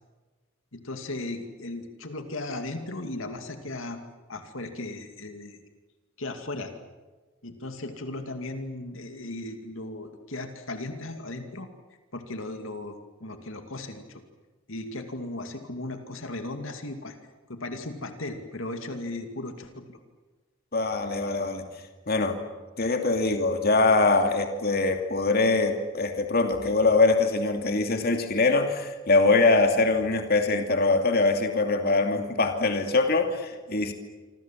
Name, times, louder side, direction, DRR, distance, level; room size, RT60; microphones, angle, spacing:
voice 1, 0.7-4.0 4.3-5.6 6.2-6.7 7.4-11.7 12.1-14.2 14.7-17.2 17.5-20.0 23.2-23.3, left 2 dB, 70° left, 6 dB, 2.5 m, -36 dB
voice 2, 20.7-21.6 22.1-22.4 22.8-33.9, left 3 dB, 45° left, 5 dB, 2.6 m, -23 dB
26.5 x 26.5 x 7.5 m, 1.3 s
head